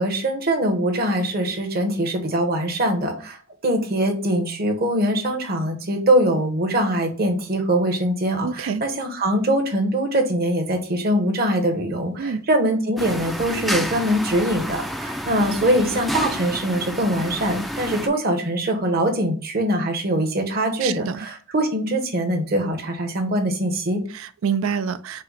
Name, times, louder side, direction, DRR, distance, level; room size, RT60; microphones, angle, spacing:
voice 1, 0.0-3.4 3.6-24.0, right 1 dB, 50° right, 0.9 m, -22 dB
voice 2, 8.4-8.8 12.2-12.4 20.8-21.2 24.1-25.2, right 6 dB, 90° right, 0.4 m, -26 dB
sound 1, 13.0-18.1, equal, ahead, 0.3 m, -30 dB
5.4 x 2.1 x 3.9 m
head